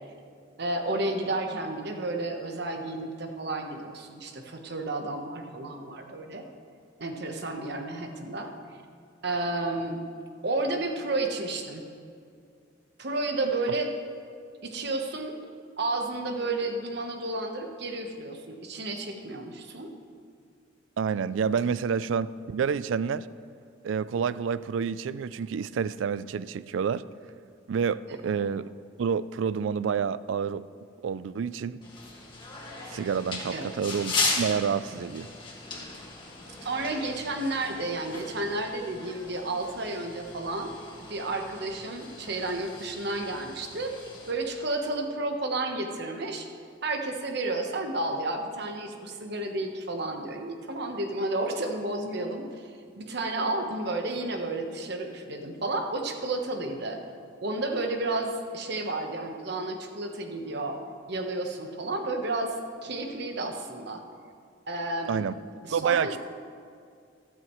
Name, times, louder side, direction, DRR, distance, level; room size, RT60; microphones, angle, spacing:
voice 1, 0.6-6.4 7.0-8.5 9.2-10.0 10.4-11.8 13.0-13.9 14.6-15.4 15.8-19.9 28.1-28.3 33.5-33.8 36.6-40.8 41.1-46.5 46.8-52.7 53.0-57.0 57.4-60.8 61.1-62.6 62.8-64.0 64.7-65.3 65.6-66.2, right 2 dB, 60° right, 4 dB, 1.1 m, -31 dB
voice 2, 21.0-23.3 23.8-27.0 27.7-28.7 29.0-30.6 31.0-31.8 32.9-35.3 65.1-65.4 65.7-66.2, right 6 dB, 75° right, 17 dB, 0.3 m, -28 dB
sound 1, 31.8-44.3, left 3 dB, 25° left, 1.8 m, -37 dB
13.5 x 13.0 x 3.1 m, 2.3 s
head